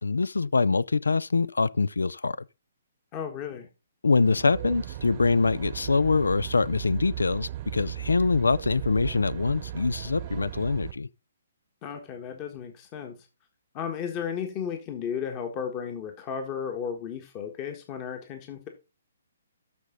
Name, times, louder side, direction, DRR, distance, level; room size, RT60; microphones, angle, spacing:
voice 1, 0.0-2.4 4.0-11.1, left 4 dB, 75° left, 0.4 m, -24 dB
voice 2, 3.1-3.7 11.8-13.2 13.7-18.7, left 7 dB, 30° left, 1.5 m, -34 dB
Aircraft, 4.2-10.9, right 14 dB, 40° right, 0.9 m, -37 dB
13.0 x 5.1 x 3.9 m
figure-of-eight pair, 130°, 0 cm